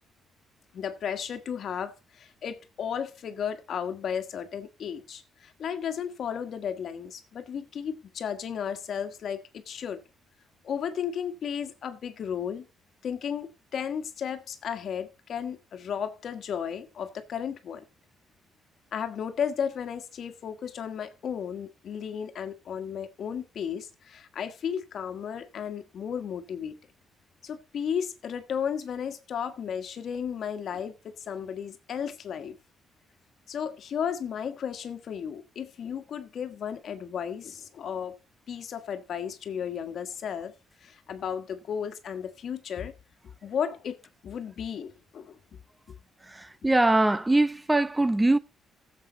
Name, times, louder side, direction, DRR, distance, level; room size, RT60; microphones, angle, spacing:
voice 1, 0.7-10.0 10.6-12.7 13.0-17.8 18.9-26.8 27.4-32.6 33.5-38.2 38.5-40.5 40.8-42.9 43.4-44.0 44.2-45.4, left 8 dB, 60° left, 1.4 m, -34 dB
voice 2, 46.2-48.4, right 2 dB, 15° right, 0.6 m, -22 dB
15.0 x 7.5 x 3.9 m
cardioid pair, 90°, 0 cm